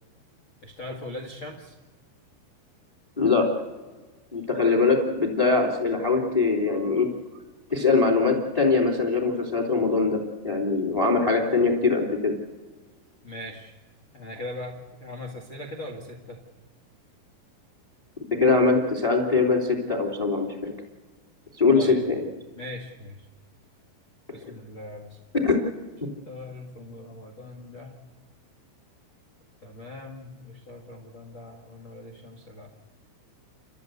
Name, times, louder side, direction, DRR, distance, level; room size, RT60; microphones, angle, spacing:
voice 1, 0.6-1.7 13.2-13.7 14.1-16.4 21.7-22.0 22.5-23.2 24.3-25.2 26.2-28.0 29.6-32.7, left 1 dB, 80° left, 4 dB, 1.1 m, -40 dB
voice 2, 3.2-3.5 4.3-7.1 7.7-12.3 18.4-20.7 21.6-22.2 24.4-24.5 25.4-25.6, left 4 dB, 15° left, 3 dB, 1.4 m, -22 dB
30.0 x 13.5 x 8.1 m, 1.3 s
omnidirectional pair, 5.5 m